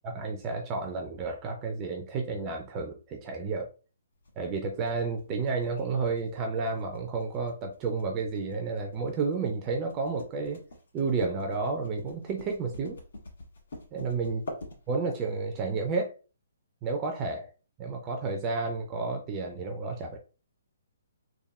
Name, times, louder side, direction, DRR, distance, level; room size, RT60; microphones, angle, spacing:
voice 1, 0.0-3.7 4.4-10.6 10.9-13.0 13.9-14.4 14.9-16.1 16.8-17.5 17.8-20.2, right 4 dB, 15° right, 3 dB, 0.4 m, -31 dB
sound 1, 4.3-15.3, left 2 dB, 60° left, 1.5 m, -44 dB
3.5 x 2.2 x 4.0 m, 0.34 s
hypercardioid pair, 180°, 0 cm